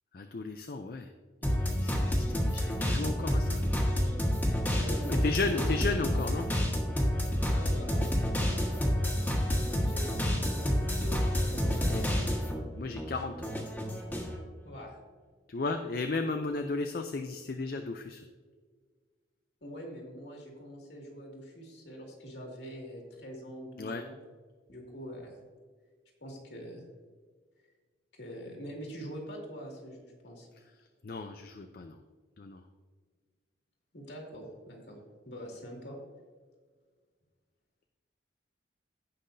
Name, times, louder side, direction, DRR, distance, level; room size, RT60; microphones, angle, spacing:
voice 1, 0.1-1.1 1.4-3.6 5.1-6.5 11.9-12.0 12.7-13.5 15.5-18.3 23.8-24.0 31.0-32.0 32.4-32.6, left 3 dB, 50° left, 6 dB, 0.5 m, -34 dB
sound 1, 1.4-12.6 13.0-14.3, equal, 10° left, 1.5 m, -29 dB
voice 2, 4.7-5.8 7.5-8.1 8.5-9.6 9.8-12.3 14.6-15.0 19.6-24.1 24.7-25.4 26.2-26.8 28.1-30.5 33.9-35.0 35.2-36.0, equal, 70° left, -1 dB, 2.3 m, -44 dB
16.5 x 5.7 x 2.7 m, 1.5 s
head